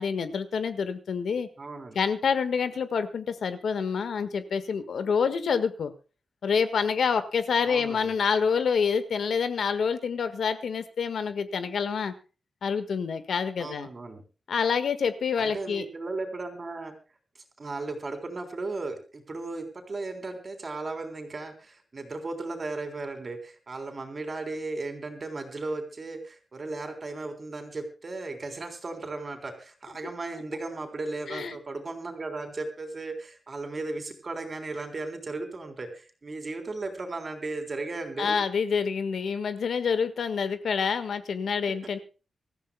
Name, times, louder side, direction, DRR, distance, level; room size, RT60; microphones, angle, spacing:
voice 1, 0.0-1.5 1.9-5.9 6.4-12.1 12.6-13.9 14.5-15.8 31.3-31.5 38.2-42.0, left 6 dB, 75° left, 11 dB, 1.6 m, -27 dB
voice 2, 1.6-2.0 7.6-8.1 13.6-14.2 15.4-16.9 17.6-38.4, right 3 dB, 35° right, 5 dB, 3.5 m, -36 dB
25.5 x 14.0 x 2.3 m, 0.35 s
wide cardioid pair, 150°, 0 cm